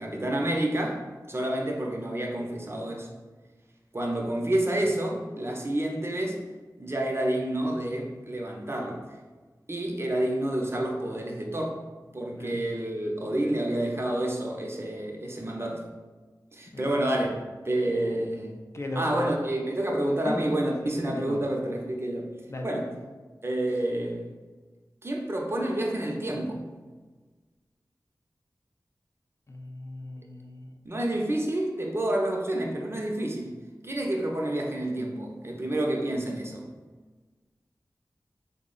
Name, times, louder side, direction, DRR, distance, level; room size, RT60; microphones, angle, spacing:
voice 1, 0.0-3.1 3.9-6.4 6.8-9.0 9.7-11.8 12.1-15.8 16.5-17.3 17.6-18.6 19.0-22.3 22.6-22.9 23.4-24.3 25.0-26.6 30.8-36.6, right 1 dB, 35° right, 0 dB, 0.5 m, -29 dB
voice 2, 16.7-17.1 18.7-19.3 20.2-20.4 20.8-21.4 22.5-22.7 29.5-30.7, left 1 dB, 40° left, 1 dB, 0.4 m, -37 dB
3.6 x 2.0 x 3.7 m, 1.3 s
wide cardioid pair, 50°, 7 cm